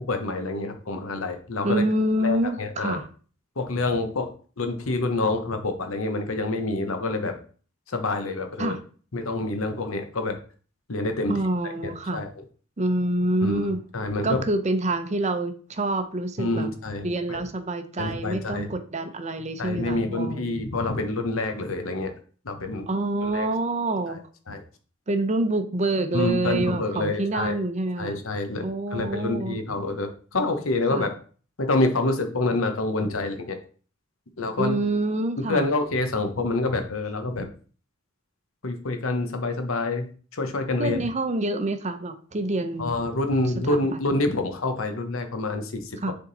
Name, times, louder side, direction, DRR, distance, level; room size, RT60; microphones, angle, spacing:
voice 1, 0.1-1.8 2.2-3.0 3.6-4.3 4.6-7.4 7.9-8.8 9.1-10.4 10.9-11.4 12.1-12.3 13.4-13.6 13.9-14.4 16.4-17.4 18.0-18.7 19.6-22.1 22.4-22.9 23.2-23.5 24.5-24.6 26.1-27.5 28.0-28.6 28.9-31.1 31.6-33.6 34.4-34.8 35.4-37.5 38.6-41.0 42.8-45.9, left 2 dB, 80° left, 7 dB, 1.0 m, -27 dB
voice 2, 1.6-3.1 8.6-8.8 11.3-12.2 12.8-13.8 14.2-16.7 17.0-20.5 22.9-24.2 25.1-28.2 28.6-29.6 30.9-31.1 34.6-35.7 40.8-43.0 43.7-44.0 46.0-46.1, right 2 dB, 35° right, 8 dB, 0.7 m, -27 dB
6.9 x 3.7 x 4.0 m, 0.41 s
head